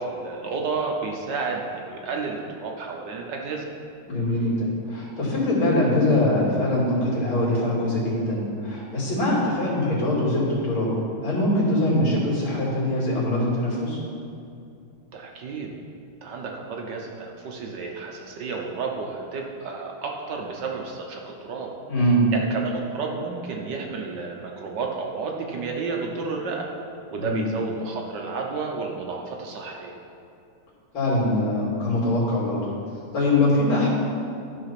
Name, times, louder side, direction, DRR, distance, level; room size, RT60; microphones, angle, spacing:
voice 1, 0.0-3.6 15.1-15.7 16.2-21.7 22.3-26.7 27.1-29.9, right 4 dB, 65° right, 0 dB, 1.4 m, -31 dB
voice 2, 4.1-11.0 11.2-14.0 21.9-22.3 27.2-27.4 30.9-32.7 33.1-33.9, left 1 dB, 70° left, -6 dB, 3.4 m, -23 dB
13.0 x 5.0 x 5.8 m, 2.6 s
omnidirectional pair, 2.3 m